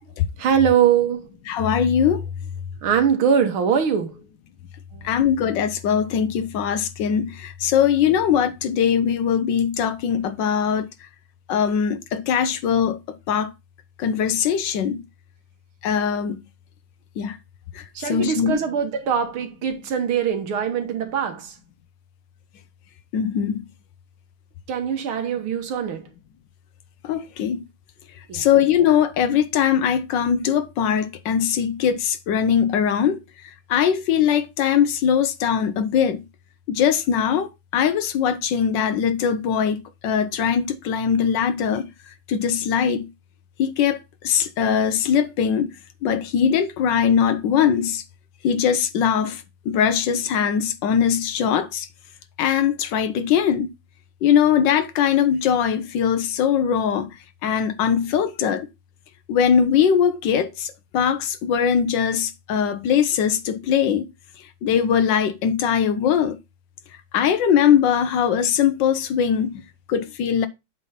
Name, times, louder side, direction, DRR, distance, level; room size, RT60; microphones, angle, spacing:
voice 1, 0.4-1.3 2.8-4.2 4.9-5.1 18.0-21.6 24.7-26.1 28.3-28.5, right 8 dB, 85° right, 2.2 m, -22 dB
voice 2, 1.5-2.2 5.0-10.9 11.5-13.5 14.0-15.0 15.8-16.4 17.2-17.4 17.7-18.6 23.1-23.6 27.0-27.6 28.3-33.2 33.7-36.2 36.7-41.9 42.3-43.1 43.6-45.7 46.0-48.0 48.4-51.9 52.4-53.7 54.2-57.1 57.4-58.7 59.3-64.0 64.6-66.4 67.1-69.6 69.9-70.5, left 8 dB, 70° left, 1.2 m, -21 dB
8.1 x 3.4 x 5.7 m
omnidirectional pair, 2.2 m